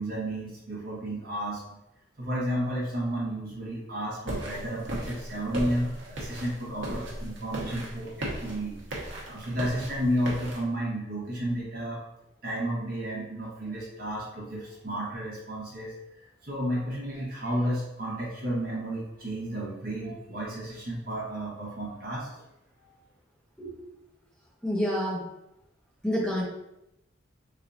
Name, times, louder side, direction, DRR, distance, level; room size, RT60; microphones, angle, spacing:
voice 1, 0.0-1.8 2.2-8.8 9.3-12.0 12.4-22.4 22.8-22.9, right 1 dB, 50° right, -5 dB, 1.1 m, -32 dB
sound 1, 4.3-10.6, right 1 dB, 80° right, 0.9 m, -37 dB
voice 2, 24.6-25.3 26.0-26.4, equal, 5° left, -7 dB, 0.9 m, -28 dB
3.7 x 3.3 x 2.7 m, 0.86 s
head